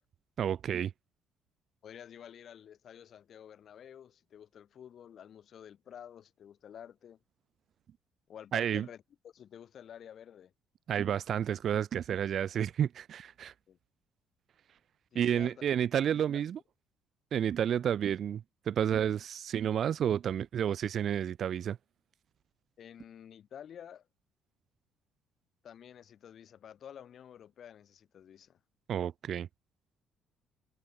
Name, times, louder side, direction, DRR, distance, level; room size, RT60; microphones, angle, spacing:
voice 1, 0.4-0.9 8.5-8.9 10.9-13.5 15.1-16.6 17.3-21.8 28.9-29.5, right 9 dB, 55° right, 0.3 m, -30 dB
voice 2, 1.8-7.2 8.3-10.5 13.7-13.8 15.1-15.5 16.3-16.4 22.8-24.1 25.6-28.6, left 9 dB, 55° left, 3.0 m, -50 dB
cardioid pair, 85°, 0 cm